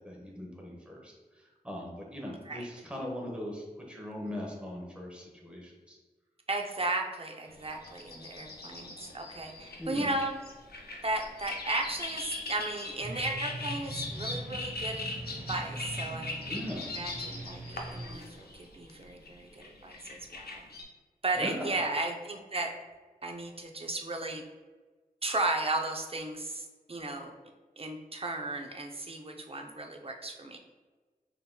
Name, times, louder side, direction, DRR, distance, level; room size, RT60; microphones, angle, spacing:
voice 1, 0.0-6.0 9.8-10.1 16.5-16.9 21.4-21.8, left 1 dB, 5° right, -2 dB, 1.0 m, -40 dB
voice 2, 6.5-10.4 11.0-15.0 15.5-16.3 17.0-20.7 21.2-22.7 23.2-24.4 25.2-27.3 27.8-30.6, right 2 dB, 35° right, 2 dB, 0.5 m, -35 dB
sound 1, 7.5-20.8, left 3 dB, 80° left, 0.6 m, -40 dB
sound 2, 13.0-18.1, right 1 dB, 55° right, 1.0 m, -41 dB
5.3 x 2.8 x 2.2 m, 1.3 s
wide cardioid pair, 60°, 16 cm